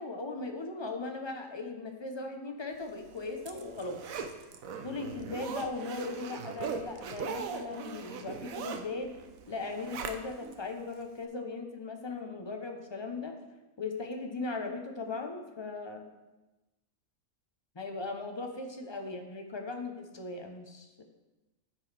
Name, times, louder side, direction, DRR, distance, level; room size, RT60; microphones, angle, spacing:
voice 1, 0.0-4.0 4.8-9.1 9.5-13.4 13.8-16.0 17.7-21.0, left 3 dB, 25° left, 4 dB, 0.6 m, -38 dB
Zipper (clothing), 3.0-10.6 11.0-11.1, right 6 dB, 80° right, 1.1 m, -40 dB
9.4 x 7.5 x 3.3 m, 1.1 s
omnidirectional pair, 1.4 m